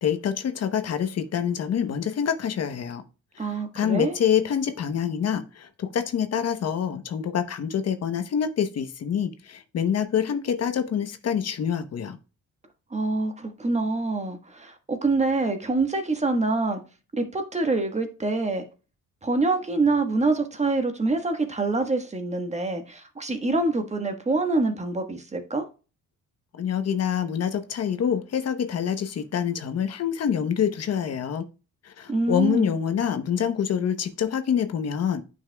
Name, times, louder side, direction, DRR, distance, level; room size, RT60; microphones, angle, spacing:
voice 1, 0.0-3.0 3.4-12.2 26.5-31.4 31.8-35.2, left 8 dB, 55° left, 0.9 m, -26 dB
voice 2, 3.4-4.2 12.9-16.8 17.1-18.7 19.2-25.7 32.1-32.7, right 3 dB, 20° right, 1.3 m, -25 dB
9.2 x 5.6 x 2.3 m
cardioid pair, 90°, 30 cm